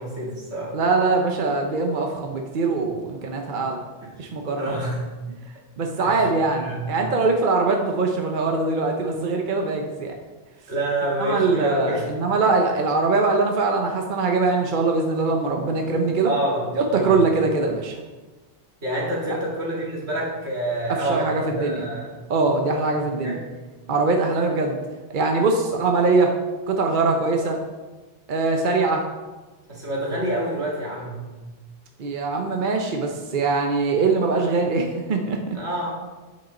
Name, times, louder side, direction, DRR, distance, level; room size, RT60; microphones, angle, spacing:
voice 1, 0.0-0.7 4.0-4.1 4.6-5.1 6.0-6.2 6.6-6.8 10.7-12.1 16.2-17.2 18.8-22.1 23.2-23.6 29.7-31.3 35.5-35.9, right 1 dB, 75° right, -4 dB, 2.4 m, -27 dB
voice 2, 0.7-3.8 4.2-4.8 5.8-10.1 11.2-16.3 16.7-18.0 19.3-19.4 20.9-21.9 22.3-23.4 23.9-24.8 25.1-26.3 26.7-27.6 28.3-29.0 32.0-35.6, right 3 dB, 50° right, 2 dB, 0.9 m, -22 dB
8.5 x 6.2 x 4.2 m, 1.3 s
omnidirectional pair, 1.1 m